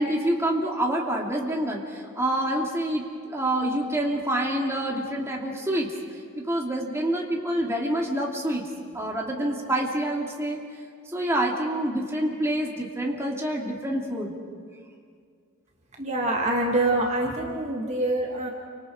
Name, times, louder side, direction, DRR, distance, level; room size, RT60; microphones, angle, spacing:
voice 1, 0.0-3.0 3.3-5.9 6.3-8.6 8.9-10.6 11.1-14.4, right 1 dB, 15° right, -2 dB, 2.6 m, -27 dB
voice 2, 16.0-18.5, right 1 dB, 30° right, 0 dB, 2.3 m, -25 dB
29.5 x 26.0 x 4.9 m, 2.2 s
head